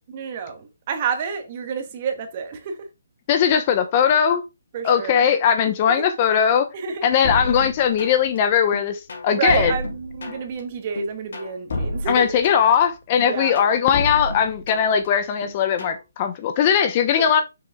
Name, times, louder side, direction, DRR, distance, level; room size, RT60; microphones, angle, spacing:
voice 1, 0.1-2.8 4.7-5.3 5.9-6.0 6.7-7.0 9.3-12.3 13.2-13.6, right 6 dB, 30° right, 1.3 m, -29 dB
voice 2, 3.3-4.4 4.8-6.7 7.0-9.7 12.1-17.4, left 8 dB, 25° left, 0.8 m, -19 dB
sound 1, 7.2-8.4 8.7-10.6 11.0-12.8 13.2-15.1 15.4-16.0, left 1 dB, 60° left, 3.1 m, -30 dB
6.9 x 6.2 x 3.6 m
hypercardioid pair, 170°, 0 cm